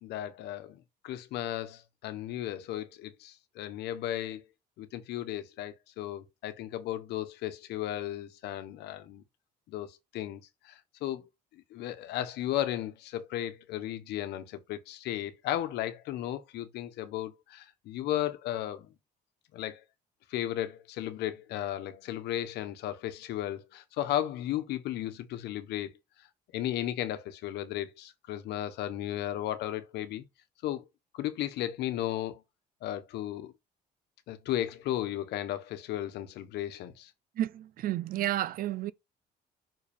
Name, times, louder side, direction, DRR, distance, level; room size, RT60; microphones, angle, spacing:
voice 1, 0.0-0.8 1.0-4.4 4.8-9.2 9.7-11.2 11.5-18.9 19.5-19.8 20.3-25.9 26.5-30.2 30.6-30.9 31.1-32.4 32.8-33.5 34.3-37.1, left 12 dB, 80° left, 1.1 m, -35 dB
voice 2, 37.4-38.9, right 13 dB, 60° right, 0.6 m, -31 dB
5.8 x 4.9 x 3.5 m
cardioid pair, 110°, 17 cm